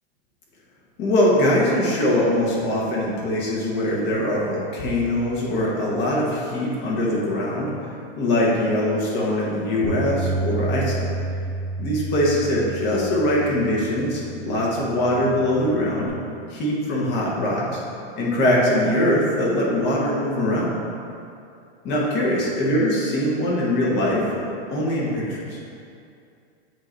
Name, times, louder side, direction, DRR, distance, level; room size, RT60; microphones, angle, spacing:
voice 1, 1.0-7.7 8.2-11.1 11.8-16.1 16.5-17.8 18.2-20.8 21.8-25.6, left 1 dB, 30° left, -4 dB, 1.3 m, -22 dB
Bass guitar, 9.8-16.1, right 2 dB, 70° left, 1.2 m, -31 dB
7.6 x 2.8 x 4.5 m, 2.5 s
supercardioid pair, 145°, 33 cm